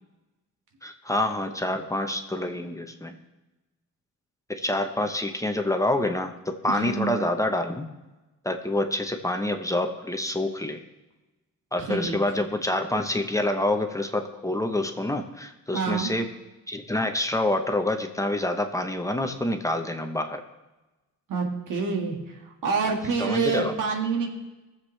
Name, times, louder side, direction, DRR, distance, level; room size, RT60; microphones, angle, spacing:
voice 1, 0.8-3.2 4.5-7.9 8.4-10.8 11.7-16.3 16.7-20.4 23.2-23.8, left 1 dB, 10° left, 5 dB, 0.9 m, -27 dB
voice 2, 6.7-7.1 11.8-12.2 15.7-16.1 21.3-24.3, right 4 dB, 85° right, 2 dB, 1.9 m, -27 dB
19.5 x 7.5 x 3.3 m, 1.1 s
cardioid pair, 120°, 31 cm